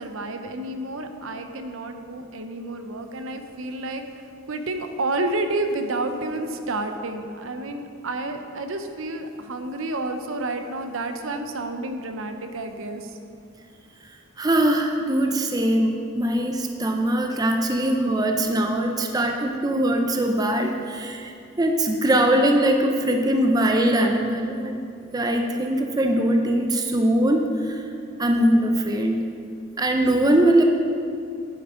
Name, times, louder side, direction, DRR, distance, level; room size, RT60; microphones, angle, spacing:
voice 1, 0.0-13.1, right 2 dB, 80° right, 7 dB, 0.6 m, -30 dB
voice 2, 14.4-21.3 21.6-24.8 25.1-27.8 28.2-29.2 29.8-30.6, right 1 dB, 20° right, 3 dB, 0.4 m, -21 dB
9.4 x 7.3 x 3.7 m, 2.4 s
head